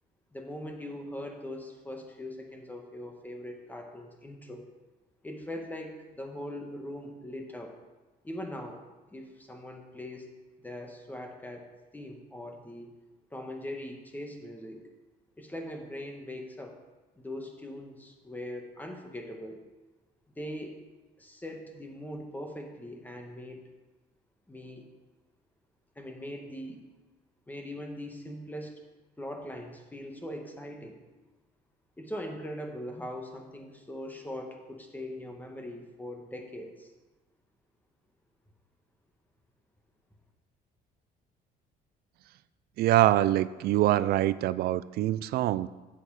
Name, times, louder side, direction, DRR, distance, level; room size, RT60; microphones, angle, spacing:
voice 1, 0.3-4.7 5.2-7.7 8.2-8.8 9.1-10.3 10.6-11.7 11.9-12.9 13.3-14.8 15.4-16.8 17.2-19.6 20.4-20.8 21.2-23.6 24.5-24.9 25.9-26.8 27.5-28.7 29.2-30.9 32.0-36.9, left 1 dB, 10° left, 2 dB, 1.4 m, -41 dB
voice 2, 42.8-45.7, right 14 dB, 70° right, 17 dB, 0.4 m, -24 dB
8.0 x 7.7 x 4.8 m, 1.2 s
cardioid pair, 110°, 17 cm